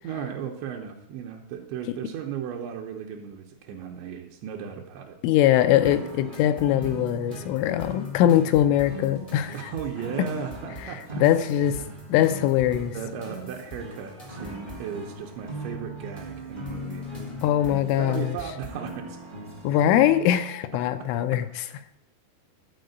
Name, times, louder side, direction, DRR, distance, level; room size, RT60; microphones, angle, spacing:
voice 1, 0.0-5.2 9.5-11.2 12.9-17.1 18.0-19.2 21.0-21.4, right 7 dB, 75° right, 1 dB, 2.9 m, -36 dB
voice 2, 5.2-9.7 11.2-11.8 12.1-13.0 17.4-18.4 19.6-21.5, left 12 dB, 85° left, 9 dB, 3.0 m, -22 dB
sound 1, 5.7-20.3, equal, 35° right, 0.8 m, -39 dB
sound 2, 5.8-19.0, equal, 50° left, 0.4 m, -44 dB
11.5 x 4.8 x 7.9 m, 0.79 s
omnidirectional pair, 5.6 m